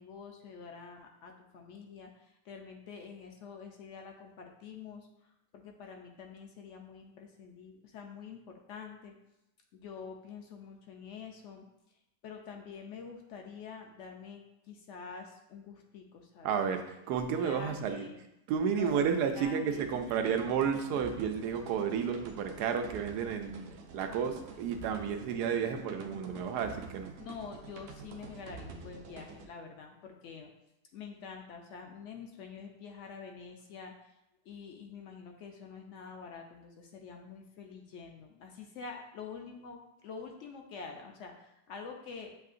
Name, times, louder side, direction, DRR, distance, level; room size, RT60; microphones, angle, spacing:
voice 1, 0.0-9.1 9.7-11.7 12.2-16.6 17.3-18.2 18.7-20.4 27.2-30.5 30.9-33.9 34.4-42.3, left 5 dB, 70° left, 2 dB, 0.7 m, -47 dB
voice 2, 16.4-18.0 18.5-23.7 23.9-27.1, right 7 dB, 90° right, 6 dB, 1.1 m, -32 dB
sound 1, 19.6-29.5, right 4 dB, 65° right, 0.8 m, -48 dB
7.6 x 2.7 x 2.5 m, 0.86 s
omnidirectional pair, 1.7 m